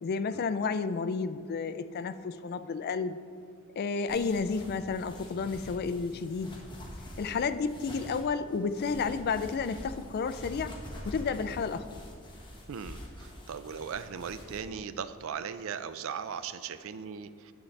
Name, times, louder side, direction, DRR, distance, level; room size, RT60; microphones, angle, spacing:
voice 1, 0.0-3.2 3.8-6.5 7.2-10.7 11.0-12.0, left 5 dB, 45° left, 12 dB, 0.3 m, -31 dB
sound 1, 4.1-14.6, left 1 dB, 20° left, 1.4 m, -46 dB
voice 2, 12.7-17.5, right 7 dB, 70° right, 13 dB, 0.4 m, -38 dB
10.0 x 7.1 x 3.2 m, 2.3 s
head